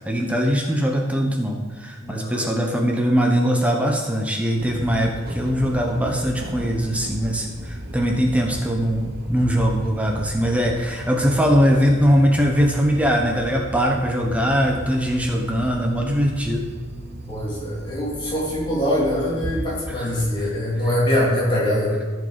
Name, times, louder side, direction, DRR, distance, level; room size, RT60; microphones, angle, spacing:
voice 1, 0.0-16.7 19.9-20.1 20.4-20.5, equal, 5° right, 1 dB, 1.1 m, -21 dB
voice 2, 2.0-2.4 17.3-22.0, left 1 dB, 25° left, -6 dB, 3.2 m, -23 dB
sound 1, 4.6-21.5, right 1 dB, 50° right, 1.2 m, -36 dB
15.0 x 6.4 x 5.2 m, 1.4 s
head